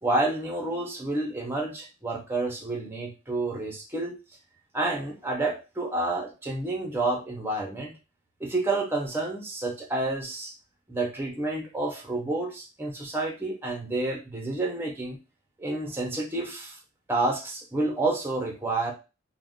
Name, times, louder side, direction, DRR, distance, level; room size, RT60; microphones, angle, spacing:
voice 1, 0.0-4.1 4.7-7.9 8.4-10.5 10.9-15.2 15.6-16.8 17.1-18.9, right 2 dB, 10° right, 0 dB, 0.6 m, -29 dB
2.5 x 2.1 x 3.6 m, 0.30 s
head